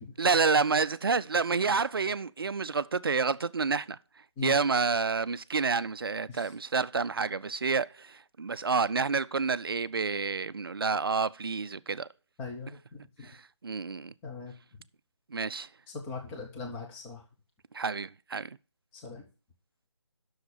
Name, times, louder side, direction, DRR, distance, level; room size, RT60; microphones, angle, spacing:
voice 1, 0.2-4.0 4.4-12.1 13.2-13.3 13.6-14.1 15.3-15.7 17.7-18.5, right 4 dB, 50° right, 0.5 m, -29 dB
voice 2, 12.4-13.3 14.2-14.5 15.9-17.2 18.9-19.2, left 4 dB, 10° left, 0.8 m, -40 dB
8.0 x 6.4 x 6.5 m
figure-of-eight pair, 155°, 15 cm